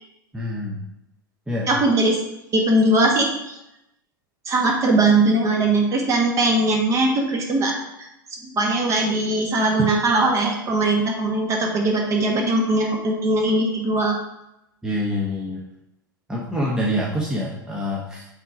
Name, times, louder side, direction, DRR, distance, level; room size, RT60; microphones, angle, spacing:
voice 1, 0.3-0.8 1.5-1.7 14.8-15.6 16.3-18.3, left 1 dB, 5° right, -4 dB, 0.9 m, -26 dB
voice 2, 1.7-2.2 2.5-3.6 4.5-7.7 8.5-14.2, right 2 dB, 25° right, 1 dB, 1.3 m, -20 dB
5.7 x 3.6 x 5.6 m, 0.87 s
figure-of-eight pair, 90°, 12 cm